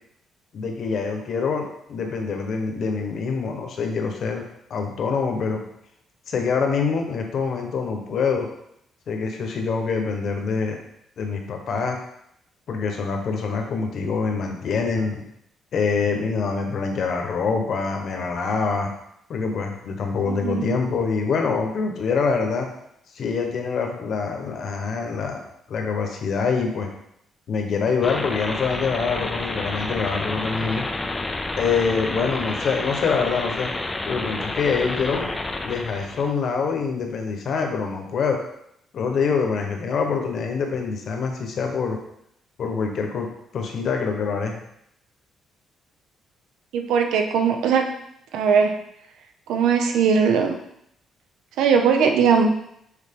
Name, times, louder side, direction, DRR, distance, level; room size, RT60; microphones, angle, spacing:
voice 1, 0.5-5.7 6.3-8.5 9.1-10.8 11.2-12.0 12.7-15.2 15.7-18.9 19.3-22.7 23.1-25.4 25.7-26.9 27.5-30.9 31.6-33.7 34.0-35.3 35.6-38.4 38.9-42.0 42.6-43.3 43.5-44.6, left 5 dB, 45° left, 3 dB, 1.0 m, -25 dB
voice 2, 20.2-20.8 46.7-47.9 48.3-48.8 49.5-50.6 51.6-52.5, right 6 dB, 80° right, 5 dB, 0.7 m, -19 dB
sound 1, 28.0-36.3, left 2 dB, 15° left, 0.4 m, -30 dB
6.7 x 4.4 x 3.7 m, 0.76 s
cardioid pair, 175°, 0 cm